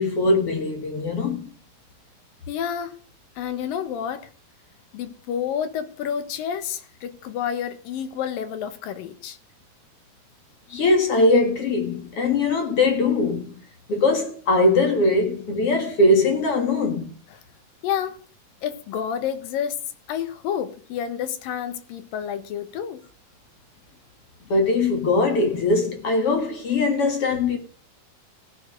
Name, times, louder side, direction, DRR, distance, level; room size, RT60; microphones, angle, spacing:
voice 1, 0.0-1.5 10.7-13.6 13.9-17.1 24.5-27.6, left 2 dB, 45° left, 2.5 m, -21 dB
voice 2, 2.5-3.0 3.4-4.3 4.9-9.4 17.8-18.3 18.6-19.8 20.1-23.0, left 9 dB, 80° left, 2.8 m, -29 dB
16.0 x 6.6 x 6.4 m
omnidirectional pair, 4.1 m